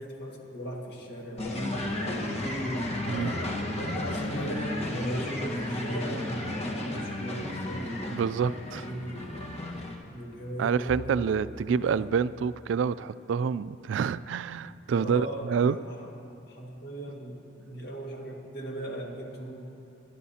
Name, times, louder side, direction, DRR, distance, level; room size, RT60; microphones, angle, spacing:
voice 1, 0.0-2.3 3.1-8.1 8.7-9.3 10.1-12.2 14.9-16.1 16.5-19.7, right 1 dB, 60° left, 0 dB, 1.9 m, -39 dB
sound 1, 1.4-9.9, left 1 dB, 35° left, 1.4 m, -33 dB
voice 2, 8.1-8.9 10.6-15.8, right 6 dB, 75° right, 16 dB, 0.3 m, -27 dB
Bowed string instrument, 10.9-15.3, right 1 dB, 45° right, 0.6 m, -48 dB
23.0 x 12.0 x 2.8 m, 2.8 s
head